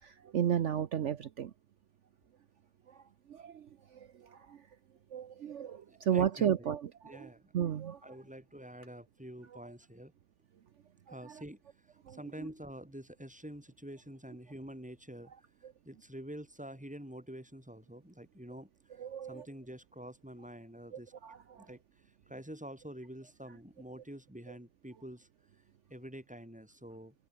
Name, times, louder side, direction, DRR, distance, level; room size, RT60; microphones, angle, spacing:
voice 1, 0.0-1.5 3.3-3.6 4.5-4.6 5.1-6.8 7.1-7.3 7.5-8.0 12.1-12.2 19.0-19.4 21.2-21.3, right 9 dB, 75° right, 0.6 m, -32 dB
voice 2, 5.9-6.7 7.0-7.5 8.0-10.1 11.1-11.6 11.9-21.1 21.6-25.3 25.9-27.2, equal, 5° right, 7.3 m, -48 dB
omnidirectional pair, 2.3 m